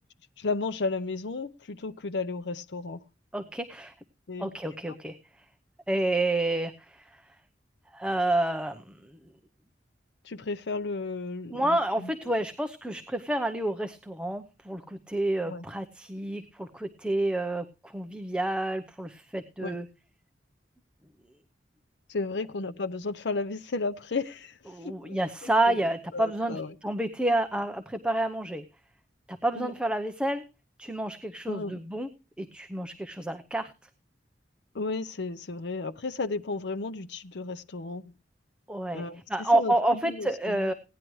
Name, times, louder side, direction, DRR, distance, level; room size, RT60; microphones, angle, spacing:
voice 1, 0.4-3.0 4.3-4.6 10.2-12.1 15.5-15.7 19.6-19.8 22.1-26.8 29.5-29.7 31.5-31.8 34.7-38.1 38.9-40.7, left 3 dB, 70° left, 0.7 m, -34 dB
voice 2, 3.3-3.9 4.4-5.2 5.9-7.0 7.9-8.9 11.5-19.9 24.7-28.6 29.3-30.4 30.8-32.1 32.4-33.7 38.7-39.0 39.3-40.7, right 1 dB, 5° right, 0.7 m, -29 dB
17.5 x 10.5 x 3.1 m
head